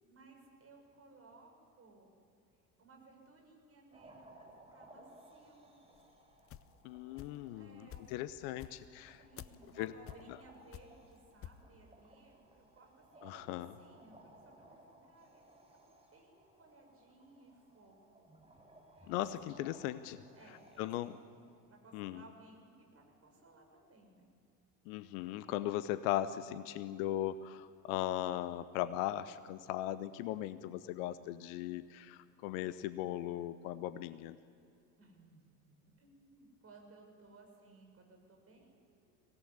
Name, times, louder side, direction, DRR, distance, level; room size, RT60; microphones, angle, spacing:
voice 1, 0.1-2.1 2.8-5.7 7.5-8.2 9.2-14.8 15.1-15.8 16.1-18.3 18.9-19.2 20.3-21.1 21.7-24.2 35.0-35.4 35.7-39.2, right 3 dB, 30° right, 1 dB, 6.9 m, -61 dB
sound 1, 3.9-21.5, right 1 dB, 10° right, 5.7 m, -61 dB
sound 2, 5.9-7.5 7.9-11.7, left 11 dB, 25° left, 0.8 m, -51 dB
voice 2, 6.8-9.2 9.8-9.9 13.2-13.7 19.1-20.2 20.8-21.1 21.9-22.2 24.9-34.4, left 13 dB, 55° left, 14 dB, 0.9 m, -38 dB
23.5 x 17.5 x 9.7 m, 2.6 s
figure-of-eight pair, 65°, 49 cm